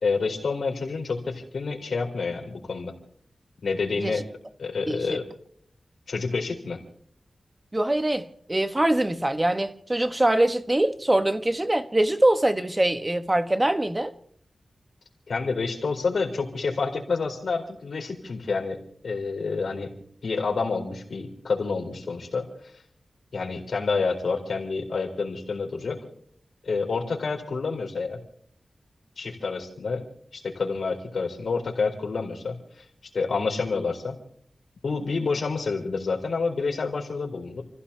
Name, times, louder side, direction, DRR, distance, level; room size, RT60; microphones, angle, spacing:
voice 1, 0.0-2.9 3.6-4.2 4.6-5.3 6.1-6.8 15.3-19.9 20.2-22.5 23.3-26.0 26.6-28.2 29.2-30.1 30.3-32.6 33.1-34.2 34.8-37.6, left 4 dB, 85° left, 4.3 m, -28 dB
voice 2, 4.9-5.2 7.7-14.1, right 1 dB, 20° right, 1.3 m, -23 dB
30.0 x 15.5 x 2.9 m
wide cardioid pair, 90°, 0 cm